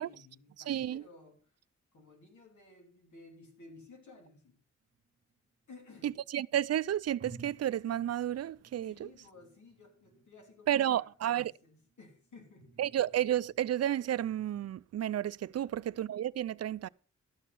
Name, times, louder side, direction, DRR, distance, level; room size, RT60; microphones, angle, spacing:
voice 1, 0.0-1.6 1.9-4.6 5.7-6.1 8.8-12.8 15.6-15.8, left 3 dB, 80° left, 3.2 m, -56 dB
voice 2, 0.7-1.0 6.0-9.1 10.7-11.5 12.8-16.9, right 11 dB, 60° right, 0.4 m, -31 dB
sound 1, 4.8-6.1 6.7-6.8 7.2-14.7, right 4 dB, 40° right, 0.9 m, -57 dB
13.0 x 6.7 x 5.5 m
wide cardioid pair, 100°, 29 cm